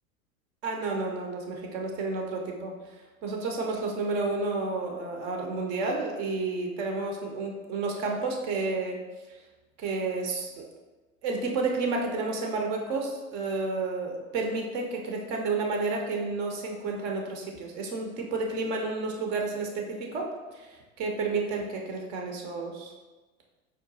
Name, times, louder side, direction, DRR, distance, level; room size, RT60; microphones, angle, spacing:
voice 1, 0.6-2.7 3.2-9.0 9.8-10.6 11.2-22.9, right 3 dB, 25° right, 1 dB, 0.3 m, -31 dB
4.6 x 2.2 x 2.6 m, 1.2 s
figure-of-eight pair, 90°, 44 cm